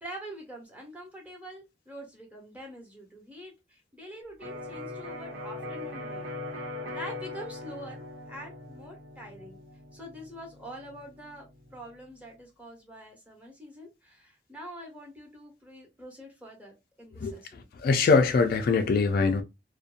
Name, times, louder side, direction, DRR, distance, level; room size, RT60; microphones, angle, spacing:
voice 1, 0.0-6.2 6.7-9.6 9.9-11.5 11.7-16.7 17.0-17.7, equal, 10° right, 1.0 m, -45 dB
Electric guitar, 4.4-12.2, left 2 dB, 90° right, 1.0 m, -41 dB
voice 2, 17.8-19.4, left 4 dB, 55° left, 0.3 m, -22 dB
2.6 x 2.1 x 2.4 m
head